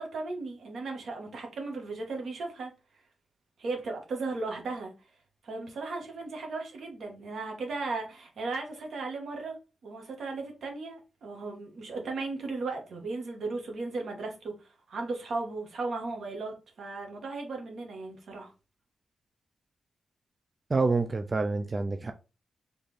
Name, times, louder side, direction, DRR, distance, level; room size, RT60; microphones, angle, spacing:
voice 1, 0.0-2.7 3.6-4.9 5.4-9.5 9.8-14.5 14.9-18.5, right 3 dB, 70° right, 1.5 m, -36 dB
voice 2, 20.7-22.1, right 3 dB, 30° right, 0.4 m, -27 dB
4.1 x 3.4 x 3.4 m
wide cardioid pair, 140°, 0 cm